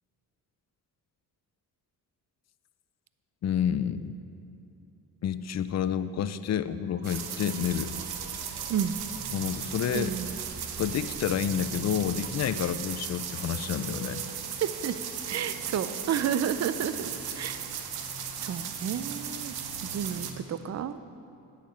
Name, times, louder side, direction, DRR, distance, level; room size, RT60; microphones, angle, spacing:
voice 1, 3.4-4.1 5.2-7.9 9.3-10.1 10.8-14.2, left 9 dB, 45° left, 13 dB, 0.5 m, -29 dB
sound 1, 6.9-12.7, right 4 dB, 25° right, 0.9 m, -48 dB
sound 2, 7.0-20.3, right 7 dB, 75° right, 0.9 m, -36 dB
voice 2, 9.9-10.4 12.6-12.7 14.6-15.0 15.3-17.7 18.4-19.6 19.8-21.0, right 8 dB, 45° right, 12 dB, 0.5 m, -31 dB
9.9 x 7.3 x 4.5 m, 2.7 s
supercardioid pair, 55°, 38 cm